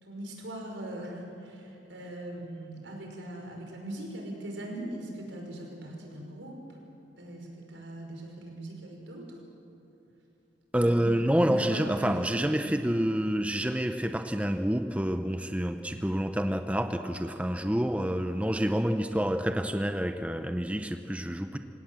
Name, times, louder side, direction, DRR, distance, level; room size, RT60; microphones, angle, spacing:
voice 1, 0.0-6.6 7.2-9.4 10.7-11.1 11.4-12.3 12.6-12.8, right 1 dB, 80° right, 1 dB, 5.5 m, -40 dB
voice 2, 10.7-21.6, equal, 5° right, 7 dB, 0.7 m, -28 dB
26.5 x 17.5 x 7.7 m, 3.0 s
head